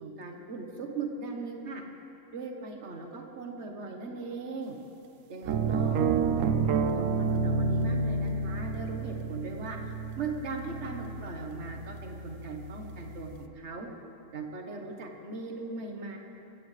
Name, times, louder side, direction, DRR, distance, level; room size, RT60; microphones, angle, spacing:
voice 1, 0.0-1.8 2.3-4.8 5.3-6.0 6.9-9.8 10.2-13.9 14.3-16.2, right 3 dB, 60° right, 2 dB, 1.7 m, -39 dB
sound 1, 5.5-13.4, right 4 dB, 90° right, 1.1 m, -30 dB
24.5 x 16.0 x 3.4 m, 2.8 s
omnidirectional pair, 1.3 m